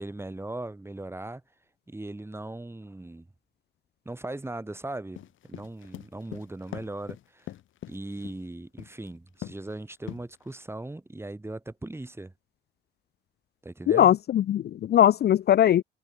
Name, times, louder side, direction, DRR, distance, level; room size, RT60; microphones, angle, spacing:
voice 1, 0.0-1.4 1.9-3.3 4.1-7.5 7.9-12.3 13.6-14.1, right 2 dB, 10° right, 3.6 m, -38 dB
sound 1, 5.2-8.4 8.8-9.1 9.4-9.7 10.1-10.6, left 13 dB, 80° left, 7.7 m, -41 dB
voice 2, 13.9-15.8, left 11 dB, 55° left, 0.5 m, -20 dB
cardioid pair, 90°, 20 cm